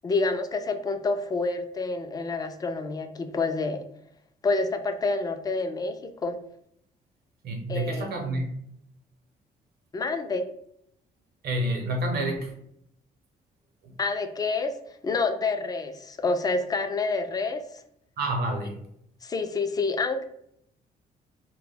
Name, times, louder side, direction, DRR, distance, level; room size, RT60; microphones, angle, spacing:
voice 1, 0.0-3.9 4.4-6.4 7.7-8.1 9.9-10.5 14.0-14.7 15.0-17.6 19.2-20.2, left 3 dB, 25° left, 8 dB, 0.3 m, -28 dB
voice 2, 7.4-8.5 11.4-12.5 13.8-13.9 18.2-18.8, right 1 dB, 75° right, 3 dB, 0.7 m, -28 dB
2.2 x 2.1 x 3.3 m, 0.71 s
cardioid pair, 95°, 16 cm